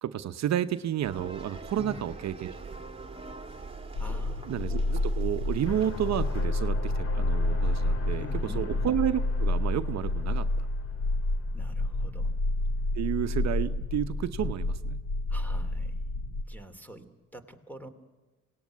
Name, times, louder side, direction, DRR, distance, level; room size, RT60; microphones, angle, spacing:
voice 1, 0.0-2.5 4.5-10.7 12.9-15.0, right 10 dB, 60° right, 10 dB, 0.9 m, -31 dB
sound 1, 1.0-6.5, right 3 dB, 20° right, 2.5 m, -43 dB
sound 2, 3.9-16.4, left 2 dB, 70° left, 1.5 m, -29 dB
voice 2, 4.0-4.6 8.2-8.7 11.5-12.4 15.3-17.9, equal, 5° left, 10 dB, 2.7 m, -45 dB
sound 3, 5.7-12.4, left 5 dB, 50° left, 2.5 m, -43 dB
25.5 x 18.5 x 9.5 m, 1.3 s
cardioid pair, 90°, 30 cm